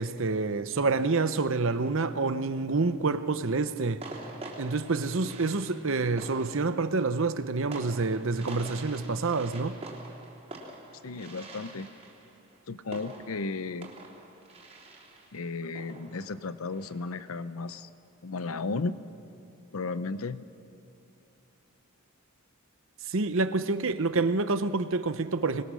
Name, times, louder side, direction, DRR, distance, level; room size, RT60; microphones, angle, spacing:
voice 1, 0.0-4.0 4.6-9.8 23.1-25.6, right 3 dB, 60° right, 0.8 m, -28 dB
sound 1, 2.7-3.1 4.0-17.4, right 2 dB, 30° right, 3.4 m, -46 dB
voice 2, 11.0-11.9 12.7-13.9 15.3-17.9 18.2-19.0 19.7-20.4, left 3 dB, 75° left, 0.7 m, -34 dB
26.5 x 21.0 x 6.3 m
head